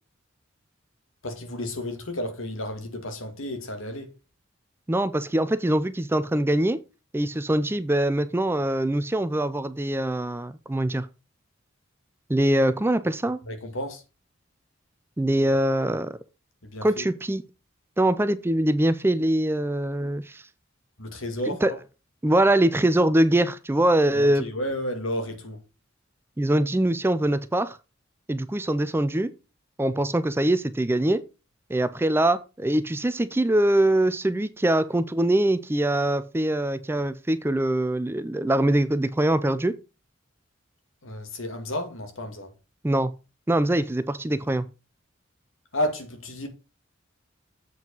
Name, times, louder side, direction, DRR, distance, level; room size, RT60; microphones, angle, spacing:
voice 1, 1.2-4.1 13.4-14.0 16.6-17.1 21.0-21.8 24.1-25.6 41.0-42.5 45.7-46.5, left 1 dB, 80° left, 2.1 m, -32 dB
voice 2, 4.9-6.8 7.1-11.1 12.3-13.4 15.2-16.2 16.8-17.4 18.0-20.4 21.6-21.7 22.2-24.4 26.4-27.8 28.3-29.3 29.8-31.2 31.7-39.7 42.8-43.1 43.5-44.6, right 1 dB, 10° right, 0.4 m, -23 dB
7.8 x 4.9 x 5.4 m
head